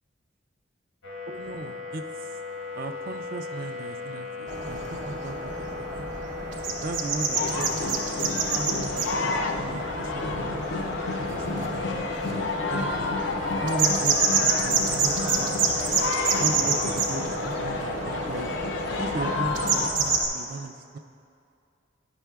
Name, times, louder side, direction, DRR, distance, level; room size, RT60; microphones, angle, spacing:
sound 1, 1.0-19.3, left 3 dB, 90° left, 0.9 m, -38 dB
voice 1, 1.3-2.0 2.8-6.1 6.8-8.1 8.5-10.7 11.2-13.2 13.6-15.7 16.4-18.5 19.0-21.0, right 3 dB, 45° right, 7 dB, 0.3 m, -37 dB
sound 2, 4.5-20.3, right 4 dB, 70° right, 0.8 m, -28 dB
sound 3, 7.3-19.9, left 3 dB, 70° left, 0.4 m, -30 dB
11.5 x 6.0 x 2.3 m, 2.5 s
head